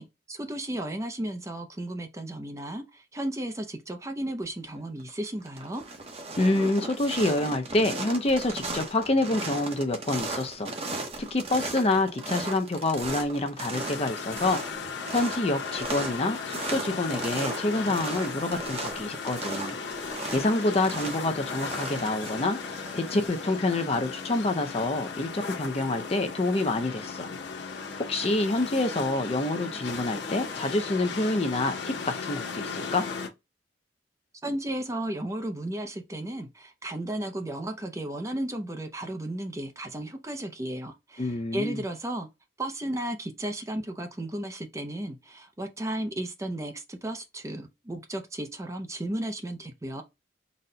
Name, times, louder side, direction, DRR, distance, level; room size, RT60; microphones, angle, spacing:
voice 1, 0.0-5.8 34.4-42.3 42.6-50.0, right 1 dB, 20° right, 0.5 m, -34 dB
sound 1, 4.7-5.1 5.4-23.3, right 3 dB, 35° right, 0.8 m, -37 dB
voice 2, 6.4-10.7 11.2-14.6 15.1-19.7 20.3-27.3 28.0-33.1 41.2-41.8, left 2 dB, 35° left, 0.6 m, -27 dB
sound 2, 13.7-33.3, left 5 dB, 90° left, 0.8 m, -36 dB
4.1 x 2.2 x 3.8 m
head